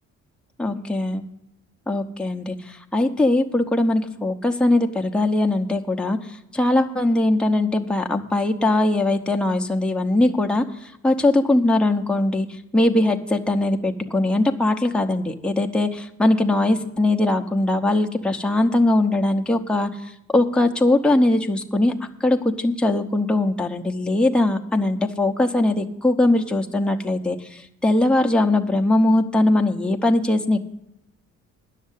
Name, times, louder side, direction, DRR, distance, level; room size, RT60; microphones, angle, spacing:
voice 1, 0.6-1.2 1.9-30.7, left 2 dB, 5° left, 3 dB, 0.8 m, -21 dB
10.0 x 6.6 x 9.1 m, 0.79 s
cardioid pair, 90°, 30 cm